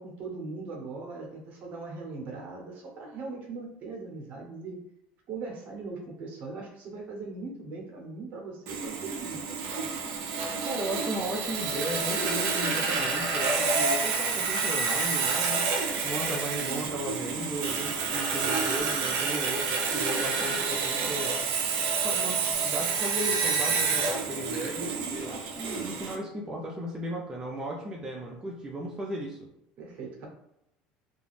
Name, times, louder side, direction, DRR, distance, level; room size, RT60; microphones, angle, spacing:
voice 1, 0.0-4.8 5.3-10.0 16.7-16.9 29.8-30.3, right 3 dB, 50° right, 1 dB, 0.9 m, -40 dB
Sawing, 8.7-26.2, right 4 dB, 70° right, 0.5 m, -29 dB
voice 2, 10.6-15.7 16.0-21.4 22.0-29.5, right 1 dB, 20° right, -2 dB, 0.4 m, -36 dB
2.4 x 2.2 x 3.2 m, 0.80 s
supercardioid pair, 105°, 3 cm